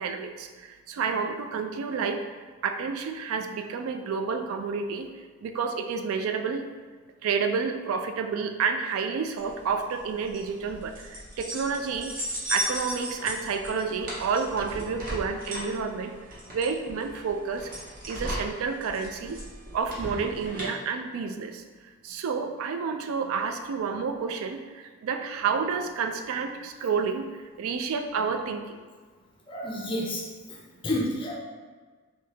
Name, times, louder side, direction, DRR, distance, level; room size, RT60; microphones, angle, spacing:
voice 1, 0.0-2.2 2.6-5.1 5.4-6.7 7.2-12.1 12.5-16.2 16.5-17.7 18.1-19.4 19.7-28.8, right 5 dB, 80° right, 7 dB, 0.3 m, -30 dB
sound 1, 9.4-20.7, equal, 40° right, 0.7 m, -36 dB
voice 2, 29.5-31.4, left 1 dB, 25° left, -1 dB, 0.4 m, -31 dB
2.8 x 2.7 x 3.2 m, 1.5 s
head